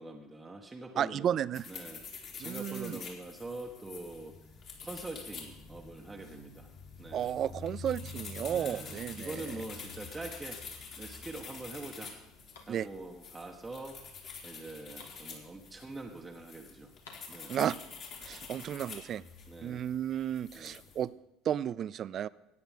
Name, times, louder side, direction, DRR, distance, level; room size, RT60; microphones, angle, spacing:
voice 1, 0.0-1.4 1.7-4.3 4.8-6.7 7.0-7.3 8.5-10.6 11.0-12.1 12.7-14.0 14.4-16.9 17.3-17.5 19.5-19.8 20.5-20.7, right 2 dB, 15° right, 0 dB, 1.2 m, -44 dB
voice 2, 1.0-1.7 2.4-3.0 7.1-9.4 12.7-12.9 17.5-17.8 18.2-19.2 19.6-21.1 21.4-22.3, right 10 dB, 45° right, 20 dB, 0.3 m, -33 dB
sound 1, 1.5-21.0, left 5 dB, 45° left, 3.2 m, -47 dB
sound 2, 12.5-16.1 16.4-16.5 16.7-18.0, left 4 dB, 70° left, 1.9 m, -59 dB
17.0 x 9.4 x 3.7 m, 0.95 s
figure-of-eight pair, 60°, 0 cm